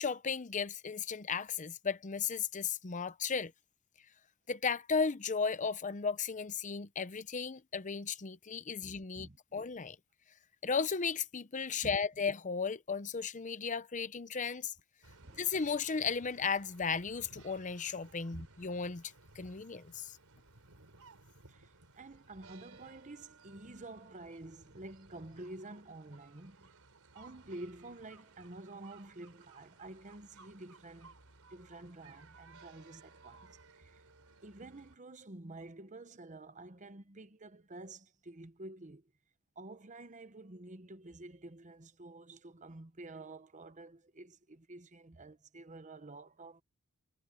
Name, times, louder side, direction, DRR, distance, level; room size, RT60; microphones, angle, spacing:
voice 1, 0.0-3.5 4.5-10.0 10.6-14.7 15.4-20.2, left 5 dB, 35° left, 0.7 m, -35 dB
voice 2, 8.8-9.7 11.8-12.0 15.2-15.5 18.3-18.5 21.5-26.7 27.1-31.1 31.5-34.0 34.4-39.1 39.6-46.6, right 2 dB, 35° right, 1.1 m, -49 dB
sound 1, 15.0-35.0, right 3 dB, 90° right, 3.9 m, -59 dB
head